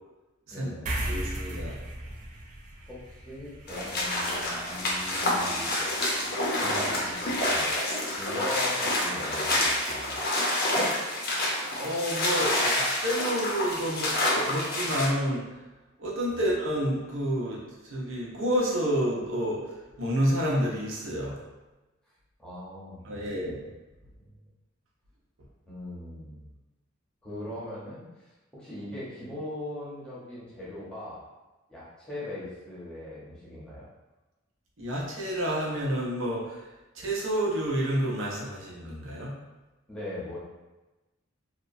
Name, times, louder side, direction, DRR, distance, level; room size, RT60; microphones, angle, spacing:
voice 1, 0.5-1.0 2.9-5.7 6.6-7.7 8.0-10.2 16.3-16.4 22.4-23.7 24.2-24.3 25.7-26.5 27.2-31.2 31.7-33.8 39.9-40.4, left 1 dB, 5° left, -9 dB, 0.8 m, -40 dB
sound 1, 0.9-7.6, right 1 dB, 40° right, 0.3 m, -39 dB
voice 2, 1.1-1.7 11.8-15.4 16.0-17.6 17.9-19.6 20.0-21.3 23.0-23.6 34.8-36.6 36.9-39.3, equal, 70° right, -3 dB, 0.7 m, -29 dB
sound 2, 3.7-15.1, left 1 dB, 50° left, 0.6 m, -28 dB
2.8 x 2.1 x 2.5 m, 1.1 s
head